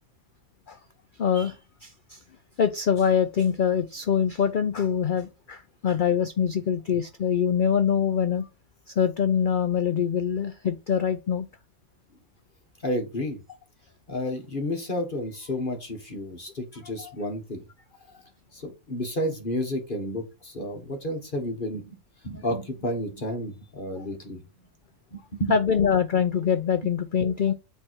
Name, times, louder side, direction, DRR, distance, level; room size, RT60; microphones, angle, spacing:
voice 1, 1.2-2.2 2.6-8.5 8.9-11.5 17.0-17.1 25.5-27.5, left 7 dB, 60° left, 0.5 m, -24 dB
voice 2, 12.8-13.4 14.1-17.6 18.5-21.8 22.2-24.4 25.1-25.5, left 1 dB, 40° left, 1.4 m, -31 dB
8.8 x 3.4 x 4.5 m
omnidirectional pair, 1.5 m